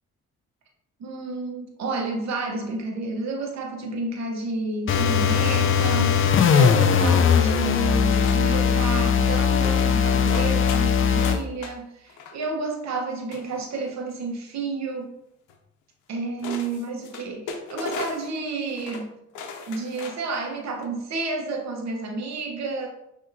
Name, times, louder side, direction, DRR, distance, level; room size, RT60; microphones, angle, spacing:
voice 1, 1.0-15.1 16.1-19.1 19.7-22.9, right 3 dB, 65° right, 0 dB, 1.0 m, -30 dB
sound 1, 4.9-11.4, left 7 dB, 45° left, 0.4 m, -20 dB
sound 2, 6.8-7.5 8.1-8.7 9.1-9.3 9.6-11.7 12.1-12.5 13.3-14.1 15.5-15.6 16.4-18.4 18.7-19.0 19.3-20.3 20.7-20.8, left 4 dB, 85° left, 0.7 m, -37 dB
6.0 x 2.8 x 2.6 m, 0.83 s
cardioid pair, 90°, 30 cm